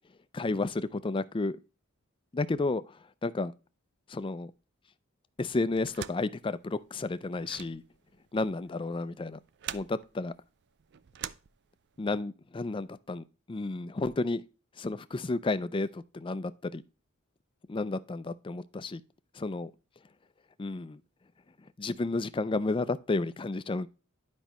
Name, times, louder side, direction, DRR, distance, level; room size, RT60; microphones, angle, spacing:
voice 1, 0.3-1.6 2.3-3.0 3.2-3.5 4.1-4.5 5.4-7.8 8.3-9.4 9.7-10.3 12.0-14.4 14.8-16.8 17.7-19.0 19.3-19.7 20.6-21.0 21.8-23.9, left 3 dB, 25° left, 0.4 m, -32 dB
sound 1, 5.7-12.1, right 10 dB, 55° right, 0.4 m, -45 dB
10.0 x 5.3 x 3.0 m
head